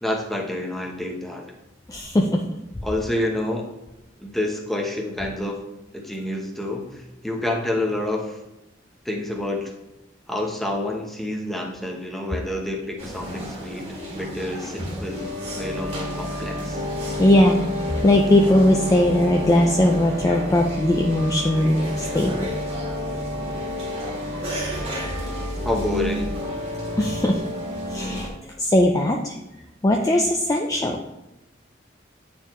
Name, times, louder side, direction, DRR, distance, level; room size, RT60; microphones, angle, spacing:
voice 1, 0.0-1.5 2.8-3.7 4.2-5.6 5.9-8.4 9.0-9.7 10.3-15.3 15.6-16.8 25.6-26.3, left 1 dB, ahead, 0 dB, 0.8 m, -28 dB
voice 2, 1.9-2.4 17.2-22.5 24.7-24.8 25.1-25.2 27.0-27.4 27.9-28.3 28.6-29.4 29.8-31.0, left 1 dB, 20° left, 1 dB, 0.4 m, -19 dB
sound 1, 13.0-28.3, left 1 dB, 30° right, 1.6 m, -30 dB
9.0 x 4.3 x 3.1 m, 0.92 s
head